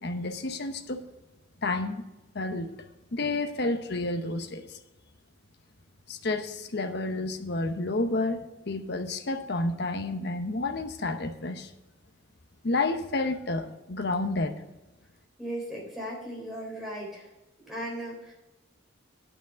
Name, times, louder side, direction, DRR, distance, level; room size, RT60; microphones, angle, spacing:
voice 1, 0.0-1.0 1.6-2.1 2.3-4.8 6.1-11.7 12.6-14.6, left 2 dB, 55° left, 7 dB, 0.9 m, -30 dB
voice 2, 15.4-17.3 17.6-18.3, right 1 dB, ahead, -4 dB, 3.6 m, -37 dB
9.2 x 6.0 x 7.4 m, 1.0 s
head